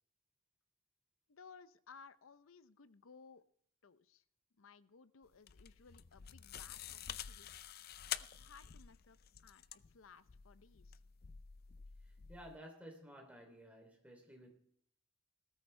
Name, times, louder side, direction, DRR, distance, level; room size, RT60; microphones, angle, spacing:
voice 1, 1.3-3.4 3.8-4.2 4.6-7.5 8.2-11.0, left 5 dB, 90° left, 0.7 m, -60 dB
sound 1, 5.2-12.6, left 10 dB, 50° left, 0.5 m, -49 dB
voice 2, 12.0-14.5, equal, 5° right, 3.1 m, -55 dB
19.5 x 13.5 x 3.3 m
head